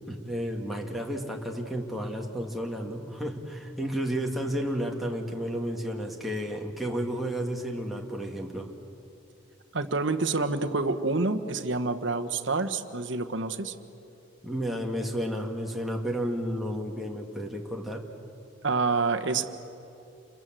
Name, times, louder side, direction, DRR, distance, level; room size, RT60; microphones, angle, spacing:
voice 1, 0.1-8.7 14.4-18.0, equal, ahead, -1 dB, 2.1 m, -32 dB
voice 2, 9.7-13.7 18.6-19.4, right 3 dB, 65° right, 7 dB, 1.3 m, -27 dB
28.5 x 22.5 x 7.7 m, 2.8 s
head